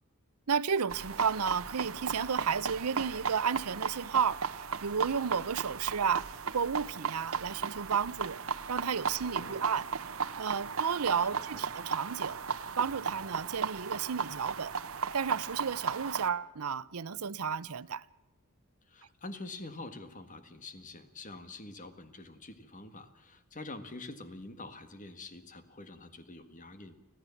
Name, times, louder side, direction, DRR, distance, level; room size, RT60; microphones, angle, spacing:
voice 1, 0.5-6.3 6.5-9.9 10.4-12.4 12.8-14.8 15.1-18.0, right 6 dB, 90° right, 0.7 m, -32 dB
sound 1, 0.9-16.3, right 6 dB, 70° right, 1.0 m, -36 dB
voice 2, 9.2-9.7 11.2-11.6 18.9-26.9, left 2 dB, 35° left, 1.8 m, -46 dB
25.5 x 15.5 x 7.2 m
head